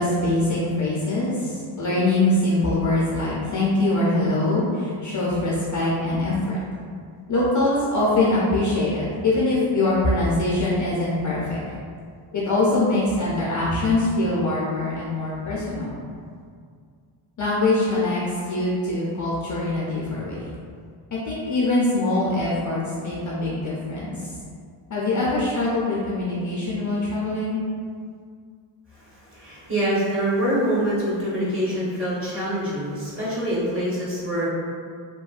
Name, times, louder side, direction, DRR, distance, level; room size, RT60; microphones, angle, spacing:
voice 1, 0.0-6.6 7.3-11.6 12.3-16.0 17.4-20.4 21.1-24.2 24.9-27.6, left 2 dB, 35° left, -6 dB, 0.6 m, -23 dB
voice 2, 29.3-34.5, equal, 25° right, -8 dB, 1.1 m, -25 dB
2.9 x 2.1 x 2.4 m, 2.1 s
cardioid pair, 85°, 50 cm